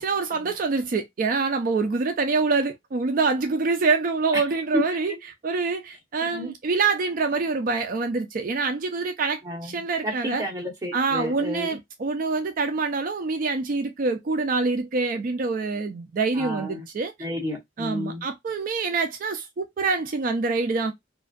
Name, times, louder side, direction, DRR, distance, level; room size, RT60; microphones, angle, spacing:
voice 1, 0.0-5.1 5.4-10.4 10.9-17.1 17.8-20.9, right 4 dB, 50° right, 0.4 m, -25 dB
voice 2, 6.2-6.5 9.4-11.8 16.3-16.8 17.2-18.2, left 1 dB, 20° right, 1.1 m, -31 dB
2.5 x 2.3 x 2.3 m
head